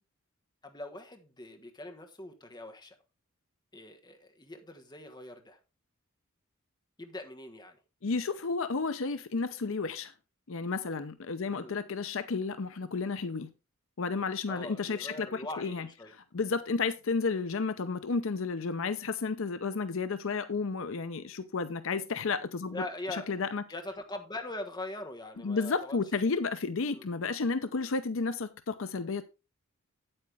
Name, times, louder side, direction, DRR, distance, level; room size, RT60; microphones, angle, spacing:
voice 1, 0.6-2.9 3.7-5.6 7.0-7.8 11.5-11.8 14.5-16.1 22.7-23.3 23.7-26.0 26.9-27.1, left 2 dB, 20° left, 1.4 m, -42 dB
voice 2, 8.0-10.1 10.5-13.5 14.0-23.6 25.4-29.2, left 4 dB, 70° left, 0.7 m, -32 dB
8.8 x 8.7 x 3.5 m
head